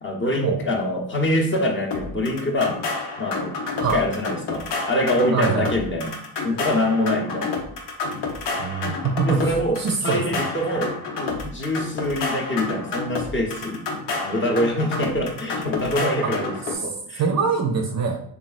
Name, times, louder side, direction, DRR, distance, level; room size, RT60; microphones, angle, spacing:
voice 1, 0.0-2.8 3.2-3.5 3.9-6.1 6.4-7.5 9.2-13.8 14.2-16.5 16.8-17.2, left 1 dB, 30° left, 1 dB, 0.6 m, -24 dB
sound 1, 1.9-16.8, left 3 dB, 75° left, 0.8 m, -29 dB
voice 2, 5.3-5.7 8.6-9.5 9.8-10.4 16.2-16.3 16.7-16.8 17.2-18.2, right 5 dB, 40° right, 4 dB, 0.5 m, -23 dB
3.2 x 2.3 x 2.4 m, 0.63 s
supercardioid pair, 70°, 43 cm